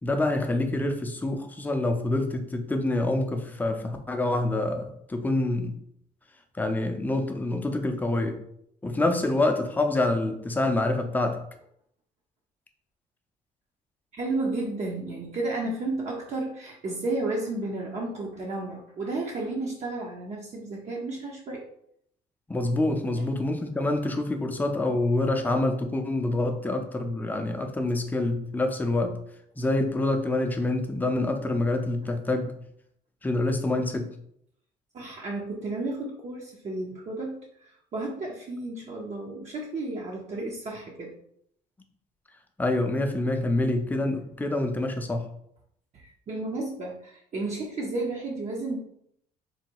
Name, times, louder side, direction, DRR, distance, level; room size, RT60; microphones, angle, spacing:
voice 1, 0.0-5.8 6.5-8.4 8.8-11.4 22.5-29.2 29.6-32.6 33.2-34.1 42.6-45.3, left 2 dB, 10° left, 4 dB, 0.5 m, -26 dB
voice 2, 14.1-21.7 34.9-41.1 45.9-48.8, right 2 dB, 45° right, -2 dB, 0.8 m, -32 dB
3.9 x 2.2 x 4.5 m, 0.71 s
cardioid pair, 110°, 17 cm